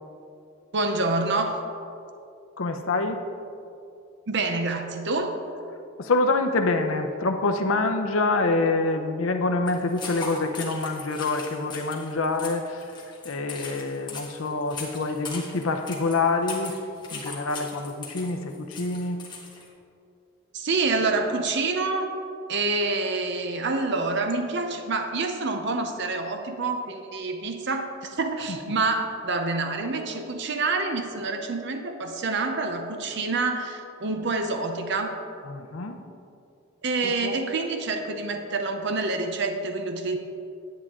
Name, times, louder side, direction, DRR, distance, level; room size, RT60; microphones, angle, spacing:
voice 1, 0.7-1.7 4.3-5.4 20.5-22.1 22.5-35.2 36.8-40.2, right 3 dB, 60° right, 5 dB, 0.7 m, -27 dB
voice 2, 2.6-3.2 6.0-12.9 13.2-16.8 17.1-19.2 35.5-36.0 37.0-37.4, left 3 dB, 85° left, 5 dB, 0.7 m, -26 dB
sound 1, 9.7-19.7, left 4 dB, 25° left, 1.5 m, -39 dB
10.5 x 8.8 x 3.7 m, 2.6 s
head